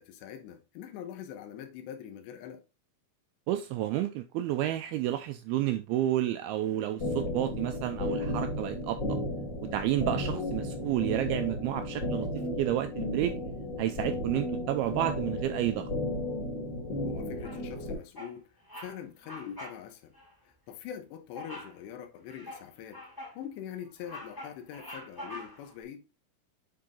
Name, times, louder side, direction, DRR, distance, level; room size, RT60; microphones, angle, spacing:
voice 1, 0.0-2.6 17.1-18.4 18.8-20.1 20.4-23.0 23.4-26.0, left 9 dB, 80° left, 3.2 m, -43 dB
voice 2, 3.5-9.0 9.7-12.3 12.6-13.3 13.8-15.9, right 13 dB, 85° right, 2.2 m, -30 dB
sound 1, 7.0-17.9, left 1 dB, 45° left, 1.5 m, -34 dB
Bird vocalization bird call bird song, 17.4-17.8 18.1-18.4 18.7-18.9 19.2-19.8 20.1-20.3 21.3-21.8 22.3-23.4 23.8-25.7, left 1 dB, 25° left, 0.5 m, -44 dB
9.4 x 3.9 x 3.7 m
omnidirectional pair, 5.0 m